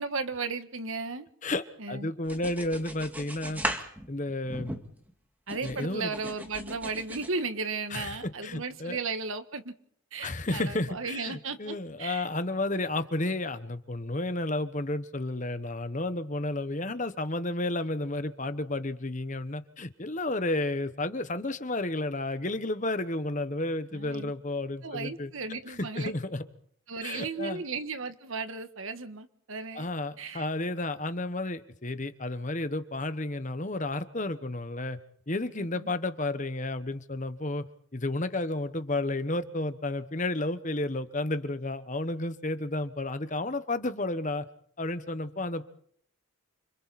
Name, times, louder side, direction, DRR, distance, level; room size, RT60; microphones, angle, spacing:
voice 1, 0.0-1.2 1.8-2.1 5.5-9.7 10.1-12.3 23.9-24.3 24.8-26.1 26.9-29.9 30.2-30.4 35.6-35.9, right 4 dB, 70° right, 9 dB, 1.6 m, -35 dB
voice 2, 1.4-3.6 4.1-4.7 5.6-6.1 7.9-8.2 8.4-9.0 10.2-25.3 25.7-26.4 27.0-27.6 29.7-35.0 35.3-37.6 37.9-44.4 44.8-45.6, left 2 dB, 35° left, 11 dB, 1.2 m, -32 dB
sound 1, 2.2-5.1 5.5-7.3, right 1 dB, 10° right, 1.9 m, -37 dB
29.5 x 26.5 x 4.3 m, 0.63 s
head